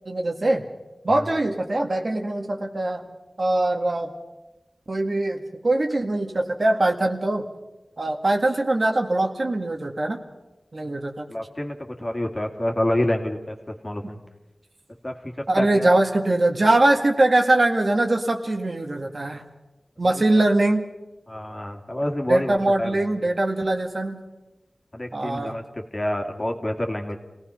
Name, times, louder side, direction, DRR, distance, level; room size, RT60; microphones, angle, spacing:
voice 1, 0.1-0.6 1.0-3.1 3.4-4.1 4.9-7.5 8.0-10.2 10.7-11.3 15.5-19.4 20.0-20.9 22.3-24.2 25.1-25.6, right 2 dB, 55° right, 3 dB, 2.0 m, -22 dB
voice 2, 11.3-14.2 15.0-16.1 21.3-23.0 24.9-27.2, left 1 dB, 30° left, 2 dB, 2.5 m, -28 dB
28.0 x 17.5 x 5.6 m, 1.1 s
wide cardioid pair, 65°, 0 cm